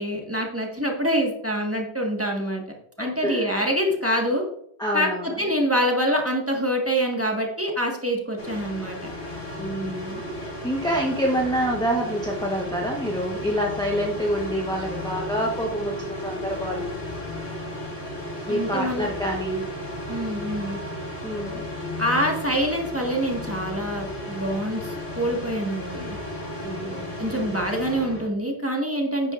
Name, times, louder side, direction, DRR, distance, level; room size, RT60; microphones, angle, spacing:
voice 1, 0.0-2.6 3.0-4.4 4.9-5.1 5.4-9.0 18.5-19.1 20.1-20.8 22.0-26.2 27.2-29.3, equal, 15° right, 0 dB, 1.6 m, -25 dB
voice 2, 3.0-3.6 4.8-5.4 9.6-16.9 18.5-19.7 21.2-21.7 26.6-27.2, equal, 5° left, -2 dB, 1.1 m, -27 dB
sound 1, 8.4-28.3, left 1 dB, 70° left, 3.1 m, -34 dB
10.5 x 8.9 x 2.5 m, 0.72 s
omnidirectional pair, 1.1 m